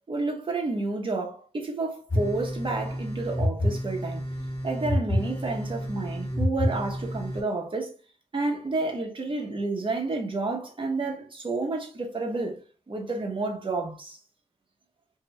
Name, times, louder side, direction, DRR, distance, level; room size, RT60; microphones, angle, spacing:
voice 1, 0.1-4.2 4.6-7.9 8.3-12.6 12.9-14.2, right 3 dB, 45° right, 0.9 m, -30 dB
sound 1, 2.1-7.4, left 1 dB, 20° left, 1.6 m, -29 dB
2.8 x 2.4 x 3.1 m
wide cardioid pair, 80°, 12 cm